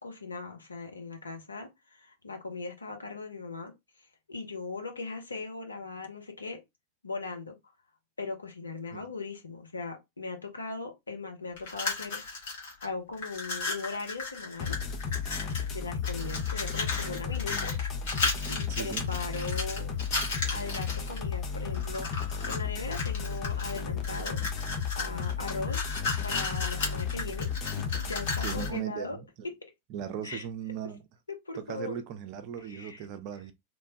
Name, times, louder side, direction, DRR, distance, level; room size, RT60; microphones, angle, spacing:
voice 1, 0.0-3.7 4.3-6.6 7.0-7.6 8.2-12.2 12.8-14.7 15.7-17.8 18.5-19.9 20.5-25.9 26.2-29.2 30.2-30.5 31.3-32.0 32.6-33.0, left 3 dB, 75° left, 0.7 m, -39 dB
sound 1, 11.6-12.9 13.1-15.7 16.0-21.2 21.7-22.6 22.9-28.8, left 3 dB, 55° left, 1.1 m, -35 dB
sound 2, 14.6-28.7, left 6 dB, 30° left, 0.6 m, -34 dB
voice 2, 18.7-19.1 28.4-29.5 29.9-31.0 31.6-33.5, right 9 dB, 45° right, 0.5 m, -38 dB
3.0 x 2.1 x 2.7 m
figure-of-eight pair, 90°, 0 cm